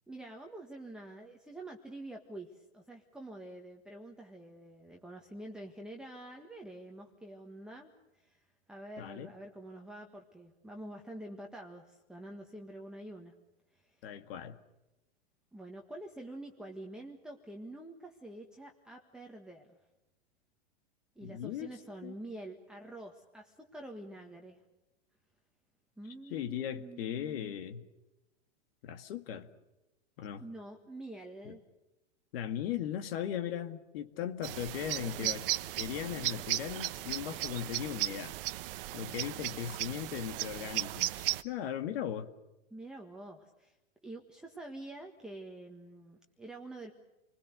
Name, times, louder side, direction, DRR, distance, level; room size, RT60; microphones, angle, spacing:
voice 1, 0.1-13.3 13.7-14.1 15.5-19.8 21.1-24.6 26.0-27.6 30.4-31.6 35.0-35.3 42.7-43.8 44.0-46.9, right 1 dB, ahead, 1.6 m, -47 dB
voice 2, 9.0-9.3 14.0-14.6 21.2-21.7 22.0-22.1 26.3-27.8 28.8-29.5 30.2-30.4 31.5-31.6 32.3-35.5 35.8-38.4 38.9-42.3, left 10 dB, 55° left, 2.0 m, -38 dB
sound 1, 34.4-41.4, right 16 dB, 50° right, 1.0 m, -36 dB
29.5 x 21.0 x 6.7 m
hypercardioid pair, 145°, 35 cm